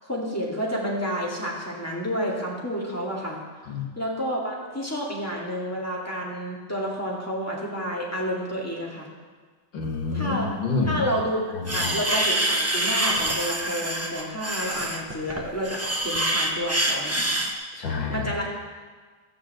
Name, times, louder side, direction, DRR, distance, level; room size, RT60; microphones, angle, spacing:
voice 1, 0.0-3.4 4.0-9.1 10.1-10.5 10.9-11.4 11.7-17.4 18.1-18.5, equal, 10° left, -4 dB, 2.1 m, -30 dB
voice 2, 9.7-11.1 11.5-12.0 17.7-18.3, left 4 dB, 85° left, 1 dB, 2.4 m, -28 dB
sound 1, 11.7-17.5, right 1 dB, 20° right, 0.4 m, -26 dB
14.0 x 6.1 x 7.8 m, 1.5 s
omnidirectional pair, 2.0 m